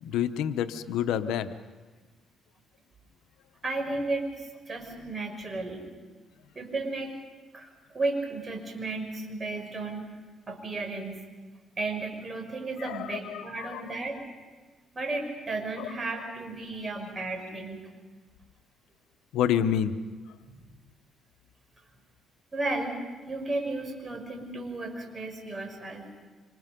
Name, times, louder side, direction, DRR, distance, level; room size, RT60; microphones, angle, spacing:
voice 1, 0.0-1.5 12.8-14.0 15.8-15.9 19.3-19.9, left 9 dB, 90° left, 10 dB, 1.0 m, -28 dB
voice 2, 3.6-5.8 6.5-7.1 7.5-10.2 10.5-11.1 11.8-14.2 14.9-17.9 22.5-23.0 23.2-26.1, right 2 dB, 35° right, 3 dB, 6.2 m, -33 dB
28.0 x 26.5 x 5.3 m, 1.3 s
cardioid pair, 90°, 0 cm